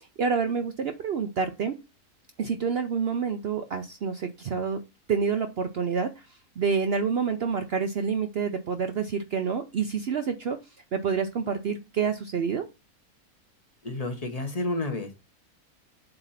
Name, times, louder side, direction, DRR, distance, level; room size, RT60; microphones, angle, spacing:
voice 1, 0.2-1.7 2.4-4.8 5.1-6.2 6.6-10.6 10.9-12.6, right 6 dB, 65° right, 8 dB, 0.6 m, -28 dB
voice 2, 13.8-15.1, left 2 dB, 25° left, 4 dB, 1.1 m, -30 dB
7.8 x 2.7 x 5.7 m, 0.27 s
omnidirectional pair, 1.6 m